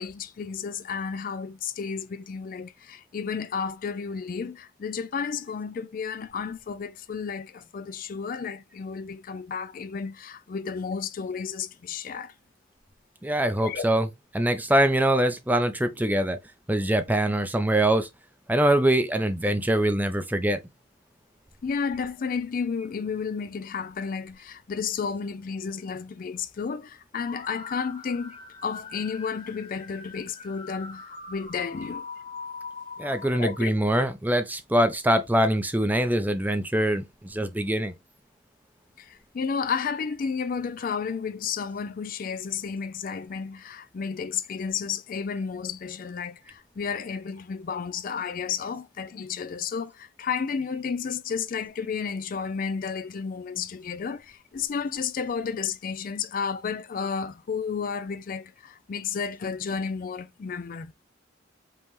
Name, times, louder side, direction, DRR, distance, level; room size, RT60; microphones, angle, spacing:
voice 1, 0.0-12.3 13.6-13.9 21.6-32.0 33.3-33.7 39.0-60.9, left 6 dB, 45° left, 0.3 m, -32 dB
voice 2, 13.2-16.4 16.7-18.1 18.5-20.6 33.0-37.9, right 1 dB, 10° right, 0.5 m, -23 dB
sound 1, 27.2-33.7, left 4 dB, 25° left, 0.8 m, -42 dB
5.3 x 2.9 x 3.0 m
head